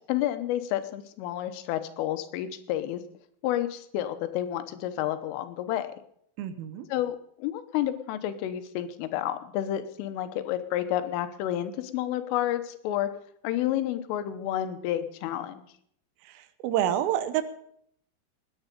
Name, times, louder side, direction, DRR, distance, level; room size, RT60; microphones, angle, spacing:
voice 1, 0.1-3.0 3.4-6.0 6.9-13.1 13.4-15.7, left 12 dB, 85° left, 10 dB, 3.6 m, -30 dB
voice 2, 6.4-6.9 16.2-17.4, right 11 dB, 90° right, 12 dB, 3.7 m, -28 dB
19.0 x 9.5 x 5.2 m, 0.67 s
omnidirectional pair, 5.7 m